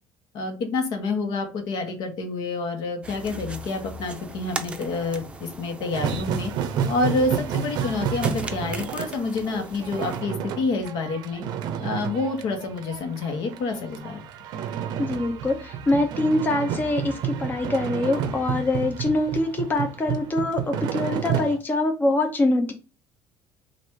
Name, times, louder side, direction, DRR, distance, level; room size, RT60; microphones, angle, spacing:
voice 1, 0.3-6.5 6.9-11.4 11.8-14.2, left 3 dB, 70° left, 4 dB, 1.2 m, -28 dB
sound 1, 3.0-10.2, right 2 dB, 15° right, 0.6 m, -39 dB
sound 2, 5.9-21.6, right 8 dB, 70° right, 0.5 m, -30 dB
voice 2, 15.0-22.7, left 2 dB, 25° left, 5 dB, 0.7 m, -24 dB
3.1 x 2.5 x 4.4 m, 0.32 s
supercardioid pair, 95°, 7 cm